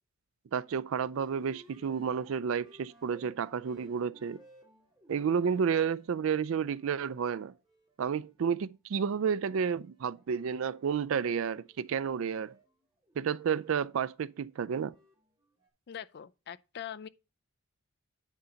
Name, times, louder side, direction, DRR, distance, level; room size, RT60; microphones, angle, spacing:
voice 1, 0.5-4.4 5.1-7.5 8.0-12.5 13.2-14.9, right 7 dB, 65° right, 0.4 m, -31 dB
sound 1, 0.9-8.6 9.1-15.7, right 1 dB, 20° right, 1.8 m, -60 dB
voice 2, 15.9-17.1, left 9 dB, 50° left, 0.4 m, -42 dB
9.7 x 3.9 x 5.6 m
head